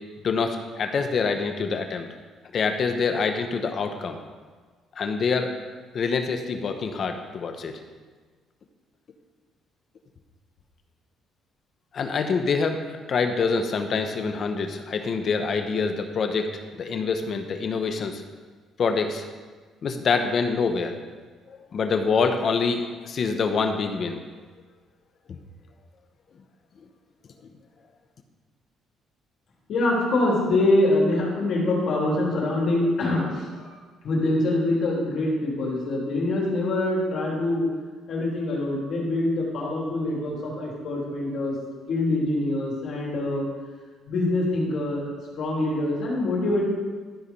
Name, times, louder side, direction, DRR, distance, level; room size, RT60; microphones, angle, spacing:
voice 1, 0.2-2.1 2.5-4.2 5.0-5.5 5.9-7.7 11.9-18.2 18.8-19.2 19.8-21.0 21.5-24.3 25.3-25.4, left 5 dB, 45° left, 6 dB, 1.0 m, -26 dB
voice 2, 29.7-33.7 34.0-37.7 38.1-41.5 41.9-43.5 44.1-45.0 45.3-46.6, left 2 dB, 60° left, -5 dB, 3.3 m, -24 dB
13.0 x 5.0 x 5.5 m, 1.5 s
cardioid pair, 125°, 0 cm